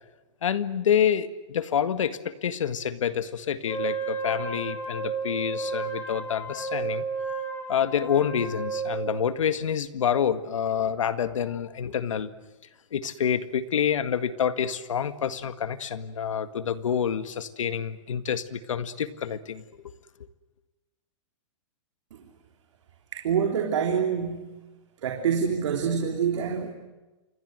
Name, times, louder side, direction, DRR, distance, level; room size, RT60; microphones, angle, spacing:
voice 1, 0.4-7.0 7.7-12.3 12.9-19.6, left 8 dB, 85° left, 11 dB, 1.9 m, -27 dB
Wind instrument woodwind instrument, 3.6-9.2, right 4 dB, 15° left, 4.4 m, -32 dB
voice 2, 23.1-24.6 25.0-26.7, right 7 dB, 75° right, 2 dB, 3.6 m, -26 dB
28.0 x 23.5 x 7.9 m, 1.2 s
hypercardioid pair, 145°, 16 cm